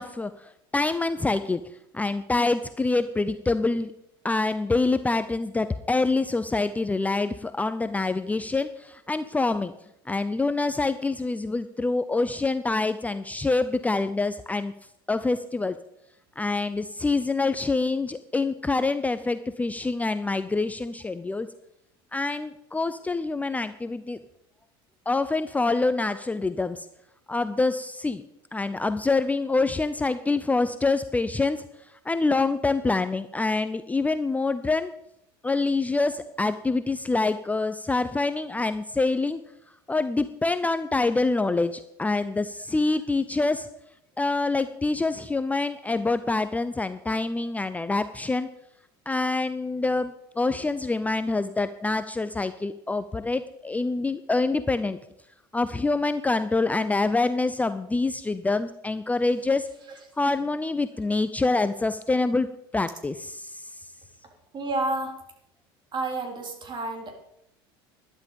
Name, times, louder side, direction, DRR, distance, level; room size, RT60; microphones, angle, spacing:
voice 1, 0.0-1.6 1.9-3.9 4.2-9.7 10.1-14.7 15.1-15.8 16.4-21.5 22.1-24.2 25.1-26.9 27.3-28.2 28.5-31.6 32.0-34.9 35.4-39.4 39.9-43.7 44.2-48.5 49.1-55.0 55.5-59.7 60.2-62.5 62.7-63.9, left 3 dB, 10° left, 11 dB, 0.6 m, -26 dB
voice 2, 64.5-65.1 65.9-67.1, right 2 dB, 40° right, 4 dB, 3.8 m, -29 dB
12.5 x 12.0 x 5.3 m, 0.79 s
supercardioid pair, 95°, 12 cm